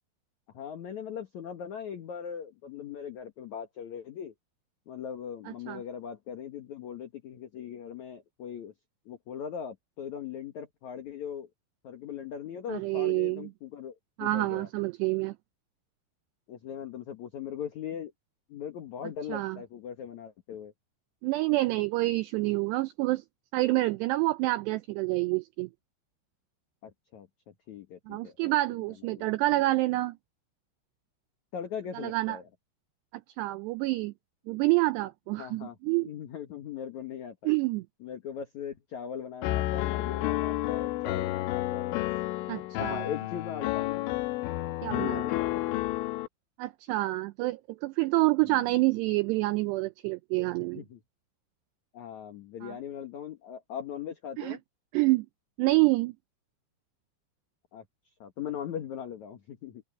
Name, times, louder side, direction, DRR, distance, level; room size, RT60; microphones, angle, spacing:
voice 1, 0.5-4.3 4.9-8.7 9.1-11.5 11.8-14.7 16.5-18.1 18.5-20.7 26.8-27.3 27.7-28.5 29.1-29.3 31.5-32.5 35.4-37.4 38.0-42.0 42.8-44.1 44.9-45.8 48.5-48.7 50.6-51.0 51.9-54.6 57.7-57.8 58.2-59.8, left 8 dB, 65° left, 1.9 m, -40 dB
voice 2, 5.5-5.8 12.7-13.5 14.2-15.4 19.3-19.6 21.2-23.2 23.5-25.7 28.1-30.2 31.9-32.4 33.4-34.1 34.5-36.1 37.5-37.9 42.5-43.0 44.8-45.2 46.6-50.8 52.6-52.7 54.4-54.6 54.9-55.3 55.6-56.1, right 20 dB, 85° right, 2.4 m, -27 dB
Piano, 39.4-46.3, left 16 dB, 90° left, 3.4 m, -30 dB
open air
omnidirectional pair, 5.4 m